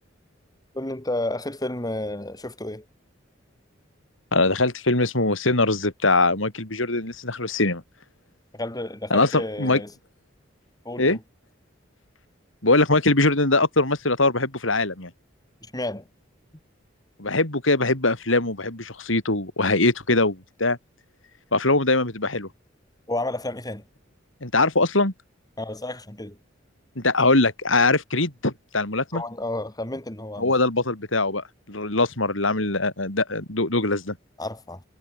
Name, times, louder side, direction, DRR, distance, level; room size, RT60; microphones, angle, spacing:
voice 1, 0.7-2.9 8.5-9.9 10.9-11.2 15.7-16.1 23.1-23.9 25.6-26.4 29.1-30.5 34.4-34.8, left 1 dB, 20° left, 3.6 m, -31 dB
voice 2, 4.3-7.8 9.1-9.8 11.0-11.2 12.6-15.1 17.2-20.8 21.5-22.5 24.4-25.1 27.0-29.2 30.4-34.2, left 2 dB, 80° left, 4.5 m, -22 dB
head